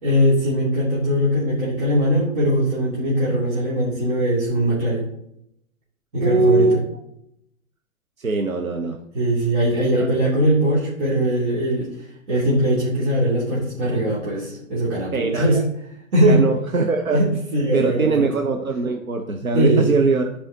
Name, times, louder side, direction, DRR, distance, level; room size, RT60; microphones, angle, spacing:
voice 1, 0.0-5.1 6.1-6.7 9.1-11.9 12.3-15.6 16.1-16.4 17.1-18.3 19.5-20.0, equal, 50° right, -8 dB, 2.7 m, -20 dB
voice 2, 6.2-6.8 8.2-9.0 9.8-10.1 15.1-15.6 16.3-17.2 17.7-20.3, right 3 dB, 85° right, 3 dB, 0.9 m, -21 dB
14.0 x 4.8 x 2.8 m, 0.76 s
figure-of-eight pair, 115°, 41 cm